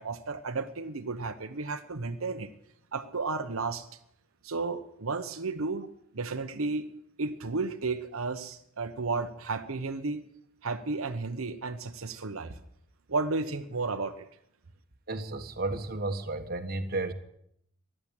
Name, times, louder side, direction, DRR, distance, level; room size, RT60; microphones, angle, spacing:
voice 1, 0.0-2.5 2.9-3.8 4.4-5.9 6.1-6.9 7.2-10.2 10.6-12.5 13.1-14.3, right 3 dB, 90° right, 7 dB, 1.0 m, -33 dB
voice 2, 15.1-17.1, right 2 dB, 45° right, 6 dB, 1.5 m, -33 dB
14.5 x 11.5 x 8.8 m, 0.72 s
head